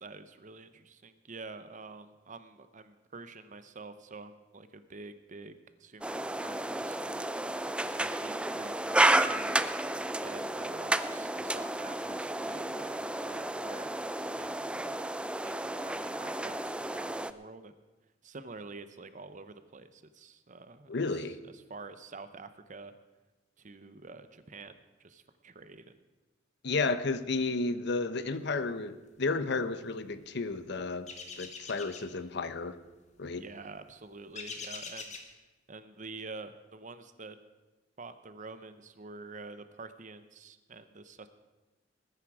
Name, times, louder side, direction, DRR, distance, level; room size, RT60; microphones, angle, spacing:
voice 1, 0.0-7.3 7.8-9.6 10.2-14.1 14.3-15.0 15.4-17.8 18.2-22.9 23.6-26.0 33.4-35.2 35.7-37.4 38.0-41.3, right 3 dB, 45° right, 11 dB, 0.8 m, -48 dB
sound 1, 6.0-17.3, right 1 dB, 5° right, 0.4 m, -32 dB
voice 2, 20.9-21.4 26.6-31.1 31.4-32.7 33.2-33.4, left 3 dB, 65° left, 12 dB, 0.8 m, -32 dB
sound 2, 31.1-32.1 34.3-35.3, left 4 dB, 40° left, 1.6 m, -43 dB
20.0 x 9.8 x 4.9 m, 1.1 s
head